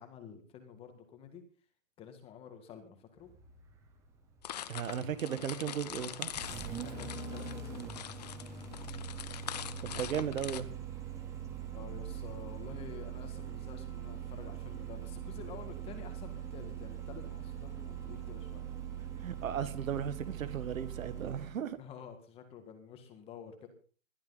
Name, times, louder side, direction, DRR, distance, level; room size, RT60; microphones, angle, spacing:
voice 1, 0.0-1.4 2.0-3.3 6.8-7.8 11.7-18.6 21.8-23.7, left 7 dB, 15° left, 1.8 m, -50 dB
Engine starting, 3.2-21.6, right 8 dB, 5° right, 0.8 m, -42 dB
sound 1, 4.4-10.6, left 11 dB, 30° left, 0.6 m, -43 dB
voice 2, 4.7-6.3 9.8-10.7 19.2-21.8, right 8 dB, 70° right, 1.8 m, -36 dB
21.0 x 12.5 x 4.0 m
hypercardioid pair, 170°, 41 cm